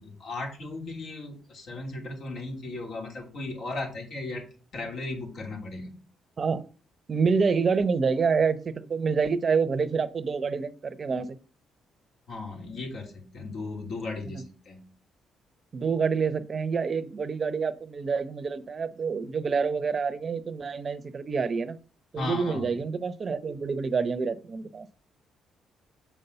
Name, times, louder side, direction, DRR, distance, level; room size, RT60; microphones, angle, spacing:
voice 1, 0.0-4.4 4.7-6.0 12.3-14.9 22.2-22.7, left 2 dB, 70° left, 1 dB, 3.1 m, -36 dB
voice 2, 7.1-11.4 14.3-14.4 15.7-21.8 22.1-24.9, right 5 dB, 40° right, 13 dB, 0.7 m, -27 dB
7.4 x 5.5 x 5.6 m, 0.38 s
cardioid pair, 90°, 0 cm